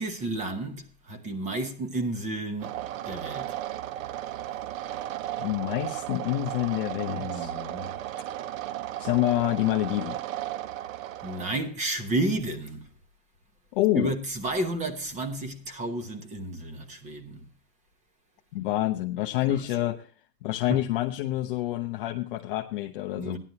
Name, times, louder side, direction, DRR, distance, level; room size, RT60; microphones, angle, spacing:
voice 1, 0.0-2.7 3.1-3.5 7.0-7.9 11.2-12.9 13.9-17.5 19.5-19.6 20.7-20.9 23.2-23.4, right 2 dB, 15° right, 1.0 m, -32 dB
sound 1, 2.6-11.6, right 13 dB, 55° right, 0.5 m, -35 dB
voice 2, 5.4-7.5 9.0-10.2 13.7-14.1 18.5-20.1 20.4-23.4, left 15 dB, 35° left, 0.6 m, -27 dB
16.0 x 11.0 x 2.8 m
supercardioid pair, 155°, 49 cm